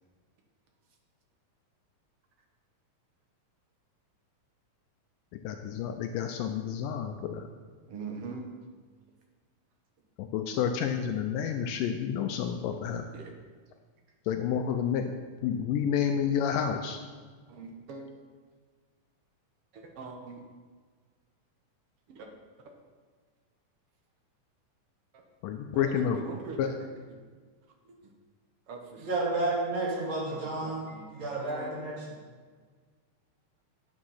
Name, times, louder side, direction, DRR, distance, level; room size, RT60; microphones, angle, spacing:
voice 1, 5.3-7.5 10.2-13.1 14.3-15.1 15.4-17.0 25.4-26.2 26.6-26.7, left 8 dB, 80° left, 6 dB, 2.2 m, -30 dB
voice 2, 7.9-8.5 13.1-13.3 17.5-18.1 19.7-20.4 22.1-22.3 22.6-22.7 25.1-25.2 25.7-27.2 27.8-28.1 28.7-29.1 30.3-31.7, right 4 dB, 60° right, 2 dB, 1.6 m, -43 dB
voice 3, 29.0-32.2, right 2 dB, 35° right, -5 dB, 3.5 m, -31 dB
9.0 x 8.8 x 5.6 m, 1.5 s
omnidirectional pair, 4.0 m